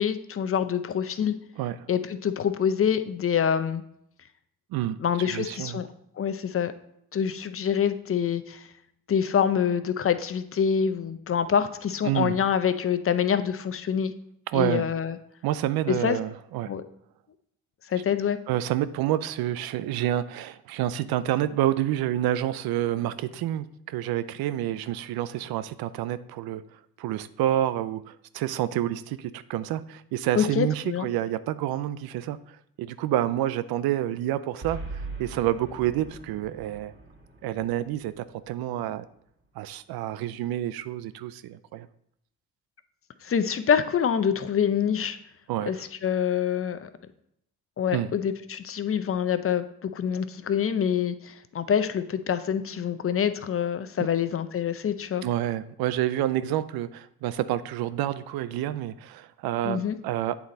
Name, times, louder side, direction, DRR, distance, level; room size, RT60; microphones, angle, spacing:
voice 1, 0.0-1.4 1.9-3.8 5.0-5.9 6.2-6.7 7.1-8.7 9.1-14.1 14.5-15.2 15.9-16.2 16.7-16.8 17.9-18.4 30.4-31.1 43.2-45.2 45.7-45.8 46.0-46.9 47.8-55.2 59.6-60.0, left 8 dB, 35° left, 10 dB, 0.6 m, -26 dB
voice 2, 4.7-5.8 12.0-12.4 14.5-14.9 15.4-16.7 18.5-26.6 27.0-36.9 37.4-39.1 39.6-41.9 45.5-45.7 47.9-48.1 55.2-60.4, right 12 dB, 75° right, 15 dB, 0.5 m, -28 dB
Boom, 34.6-39.0, right 3 dB, 30° right, 2.4 m, -41 dB
8.2 x 3.9 x 4.1 m, 0.74 s
supercardioid pair, 60°, 37 cm